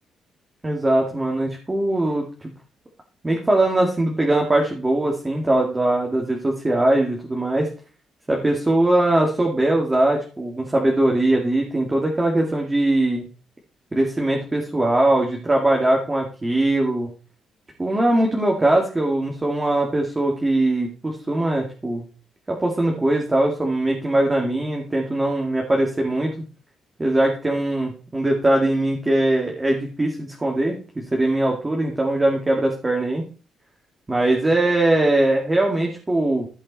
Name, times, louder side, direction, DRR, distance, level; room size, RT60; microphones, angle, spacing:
voice 1, 0.6-2.5 3.2-7.7 8.3-13.3 13.9-17.1 17.8-22.0 22.5-26.3 27.0-33.2 34.1-36.5, right 1 dB, 20° right, 0 dB, 2.4 m, -21 dB
16.0 x 5.3 x 4.3 m, 0.37 s
cardioid pair, 90°, 0 cm